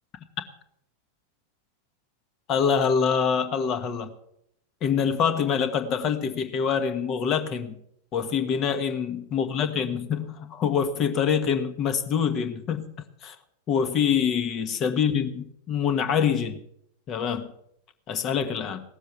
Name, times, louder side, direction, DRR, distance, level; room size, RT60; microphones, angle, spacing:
voice 1, 2.5-4.1 4.8-7.8 8.1-12.9 13.2-13.3 13.7-16.6 17.1-17.5 18.1-18.8, left 7 dB, 35° left, 8 dB, 1.5 m, -25 dB
18.0 x 7.3 x 7.1 m, 0.74 s
figure-of-eight pair, 90°, 0 cm